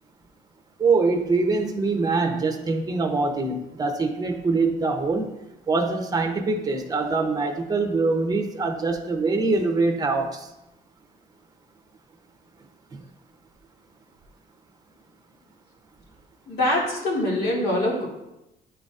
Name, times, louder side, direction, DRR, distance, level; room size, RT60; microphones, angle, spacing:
voice 1, 0.8-5.3 5.7-10.5, right 3 dB, 20° right, 4 dB, 0.8 m, -24 dB
voice 2, 16.5-18.1, left 1 dB, 70° left, -3 dB, 2.2 m, -24 dB
9.6 x 3.9 x 2.5 m, 0.91 s
cardioid pair, 110°, 17 cm